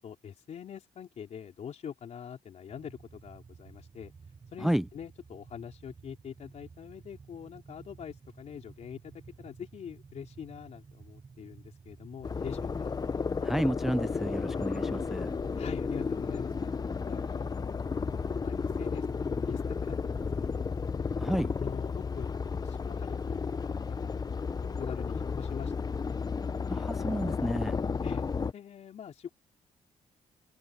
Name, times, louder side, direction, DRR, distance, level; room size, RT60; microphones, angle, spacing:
voice 1, 0.0-4.1 4.5-12.9 15.5-16.7 17.0-17.8 18.4-20.8 21.6-22.3 22.6-24.4 24.6-26.2 28.0-28.3 28.5-29.3, left 8 dB, 60° left, 4.0 m, -44 dB
sound 1, 2.7-20.9, right 5 dB, 30° right, 1.7 m, -53 dB
sound 2, 12.2-28.5, left 5 dB, 30° left, 0.7 m, -33 dB
voice 2, 13.4-15.3 21.2-21.5 26.7-27.8, equal, ahead, 0.4 m, -31 dB
open air
cardioid pair, 85°, 13 cm